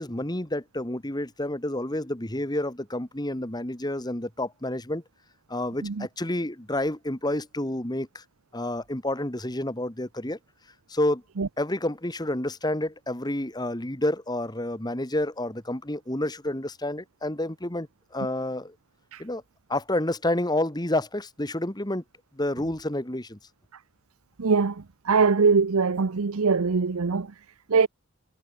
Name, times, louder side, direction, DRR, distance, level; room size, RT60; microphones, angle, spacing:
voice 1, 0.0-5.0 5.5-8.2 8.5-10.4 10.9-11.2 11.6-17.9 18.1-18.7 19.2-19.4 19.7-22.0 22.4-23.4, left 1 dB, 20° left, 1.8 m, -29 dB
voice 2, 24.4-27.3 27.7-27.9, right 5 dB, 90° right, 0.7 m, -22 dB
head